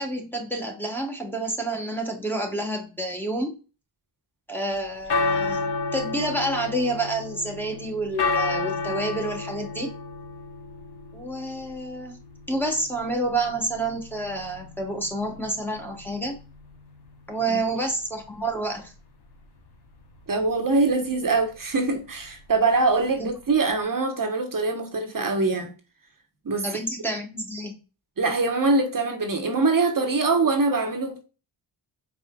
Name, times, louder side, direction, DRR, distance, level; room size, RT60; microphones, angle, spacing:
voice 1, 0.0-3.6 4.5-9.9 11.1-12.2 12.5-16.4 17.3-18.9 23.2-23.3 26.6-27.8, right 2 dB, 5° left, 1.1 m, -29 dB
sound 1, 4.7-23.8, left 4 dB, 60° left, 1.0 m, -33 dB
voice 2, 20.3-25.7 26.4-26.7 28.2-31.2, right 3 dB, 45° right, 1.0 m, -23 dB
4.9 x 4.1 x 2.2 m
wide cardioid pair, 80°, 45 cm